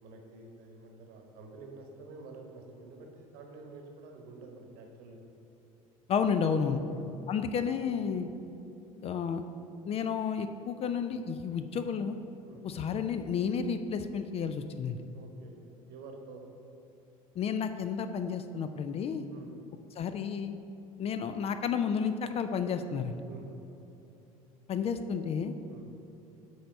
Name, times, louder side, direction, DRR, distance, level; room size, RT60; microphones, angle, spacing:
voice 1, 0.0-5.2 6.9-7.1 12.4-12.7 15.1-16.4 19.3-19.5 23.3-23.6 25.7-25.9, right 3 dB, 55° right, 3 dB, 1.0 m, -49 dB
voice 2, 6.1-6.8 7.3-8.3 9.0-9.4 9.9-12.2 12.6-15.0 17.4-19.3 20.0-20.5 21.0-23.2 24.7-25.5, left 6 dB, 35° left, 9 dB, 0.4 m, -31 dB
7.6 x 3.5 x 5.2 m, 2.9 s
figure-of-eight pair, 65°, 19 cm